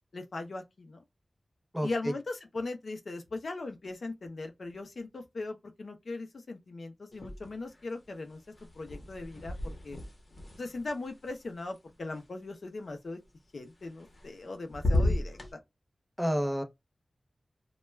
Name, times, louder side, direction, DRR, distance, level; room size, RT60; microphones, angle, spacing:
voice 1, 0.1-1.0 1.8-8.4 8.7-10.0 10.6-13.2 13.5-15.4, left 3 dB, 65° left, 0.5 m, -39 dB
voice 2, 1.7-2.1 16.2-16.6, equal, 5° right, 0.5 m, -29 dB
sound 1, 7.1-7.8 8.1-12.2 13.8-14.5 14.7-15.5, left 1 dB, 45° left, 0.8 m, -34 dB
2.2 x 2.1 x 3.0 m
wide cardioid pair, 100°, 0 cm